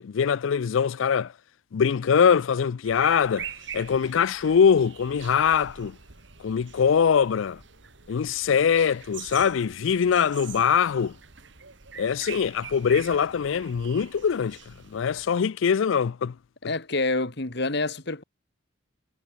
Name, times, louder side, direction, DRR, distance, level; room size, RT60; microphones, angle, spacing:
voice 1, 0.0-1.3 1.7-3.5 3.7-6.0 6.4-7.6 8.1-11.1 12.0-16.3, left 7 dB, 75° left, 0.4 m, -23 dB
sound 1, 2.8-15.4, right 8 dB, 60° right, 1.9 m, -44 dB
voice 2, 16.6-18.2, left 2 dB, 55° left, 2.2 m, -27 dB
head